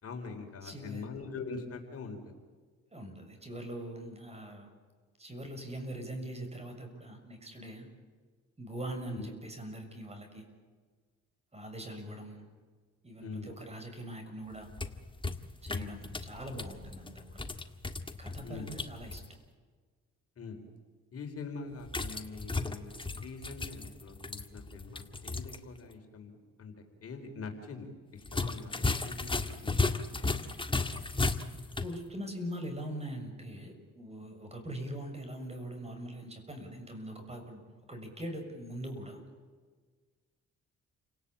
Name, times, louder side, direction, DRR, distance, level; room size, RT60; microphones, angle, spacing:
voice 1, 0.0-2.3 9.1-9.3 13.2-13.6 15.7-15.9 18.4-18.7 20.4-20.6 21.1-29.8, left 4 dB, 50° left, 4 dB, 4.7 m, -44 dB
voice 2, 0.6-1.1 2.9-4.7 5.2-7.9 8.6-10.4 11.5-12.5 13.0-14.7 15.6-17.4 18.2-19.2 31.5-37.6 37.9-39.2, right 1 dB, 20° right, 5 dB, 6.8 m, -42 dB
sound 1, 14.5-19.3 21.9-25.6 25.9-26.0 28.2-32.0, left 3 dB, 15° left, 1.8 m, -35 dB
29.5 x 18.5 x 8.8 m, 1.5 s
cardioid pair, 90°, 30 cm